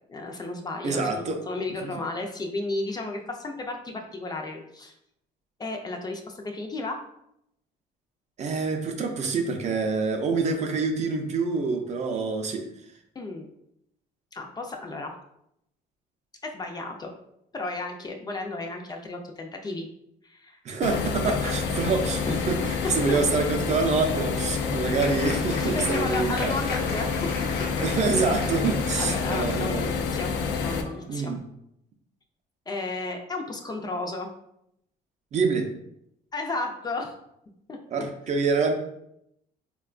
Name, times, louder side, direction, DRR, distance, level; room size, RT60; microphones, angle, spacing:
voice 1, 0.1-5.0 5.6-7.0 13.2-13.5 14.3-15.1 16.4-17.1 17.5-19.9 20.2-20.6 21.3-21.9 22.3-22.4 23.1-23.2 25.6-27.2 29.0-31.3 32.7-34.3 36.3-37.1 37.7-37.8, left 2 dB, 25° left, 2 dB, 0.4 m, -33 dB
voice 2, 0.8-1.4 1.8-1.9 8.4-12.6 20.6-26.5 27.8-29.9 31.1-31.4 35.3-35.7 37.9-38.7, right 4 dB, 45° right, 4 dB, 0.5 m, -26 dB
sound 1, 20.8-30.8, left 5 dB, 90° left, 0.4 m, -28 dB
Applause, 25.0-31.4, left 3 dB, 65° left, 0.8 m, -38 dB
3.6 x 2.2 x 2.4 m, 0.78 s
cardioid pair, 110°, 17 cm